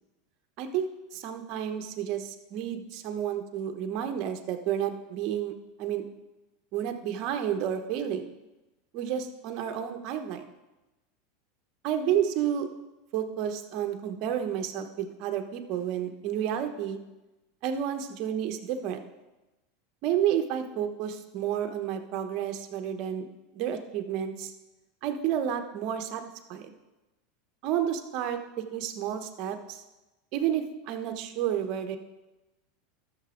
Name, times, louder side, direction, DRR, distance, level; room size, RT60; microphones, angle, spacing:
voice 1, 0.6-5.5 5.8-6.0 6.7-8.3 8.9-10.5 11.8-12.7 13.1-17.0 17.6-19.0 20.0-23.3 23.5-24.5 25.0-26.2 26.5-26.7 27.6-29.8 30.3-32.0, right 9 dB, 50° right, 7 dB, 1.1 m, -31 dB
13.0 x 6.8 x 3.8 m, 1.1 s
supercardioid pair, 130°, 0 cm